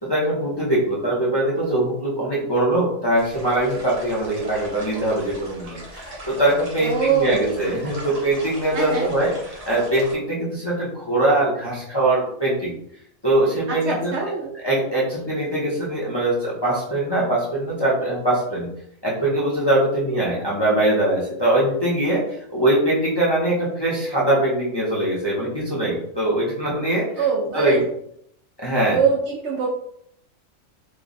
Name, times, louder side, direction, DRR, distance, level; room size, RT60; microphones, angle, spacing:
voice 1, 0.0-9.3 9.7-12.7 13.2-14.1 14.6-18.7 19.0-22.2 22.5-27.0 27.5-27.8 28.6-29.0, right 1 dB, 25° left, -7 dB, 0.7 m, -22 dB
sound 1, 3.1-10.1, right 1 dB, 35° right, 0.7 m, -39 dB
voice 2, 6.8-7.5 8.7-9.1 13.7-14.5 27.2-27.8 28.8-29.7, right 6 dB, 65° right, -1 dB, 0.8 m, -23 dB
3.1 x 2.2 x 3.8 m, 0.69 s
omnidirectional pair, 1.4 m